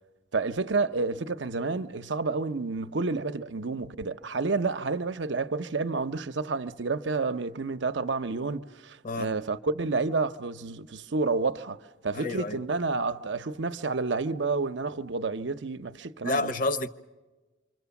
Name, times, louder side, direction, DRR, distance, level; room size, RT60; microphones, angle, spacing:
voice 1, 0.3-11.8 12.0-16.5, right 3 dB, 70° right, 0.8 m, -30 dB
voice 2, 9.0-9.3 12.1-12.6 16.2-16.9, left 2 dB, 45° left, 0.8 m, -29 dB
27.0 x 25.0 x 7.1 m
head